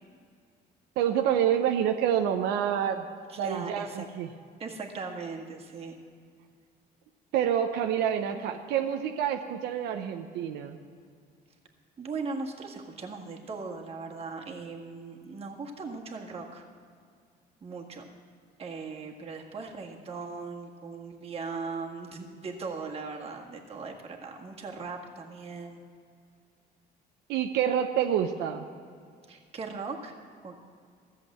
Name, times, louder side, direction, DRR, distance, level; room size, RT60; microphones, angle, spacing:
voice 1, 1.0-3.1 3.4-4.3 7.3-10.8 27.3-28.6, right 9 dB, 90° right, 5 dB, 0.7 m, -27 dB
voice 2, 3.3-4.1 4.6-6.0 12.0-16.7 17.6-18.0 18.6-25.8 29.3-30.2 30.4-30.5, right 4 dB, 35° right, 1 dB, 1.7 m, -39 dB
14.0 x 7.6 x 7.5 m, 2.2 s
cardioid pair, 110°, 17 cm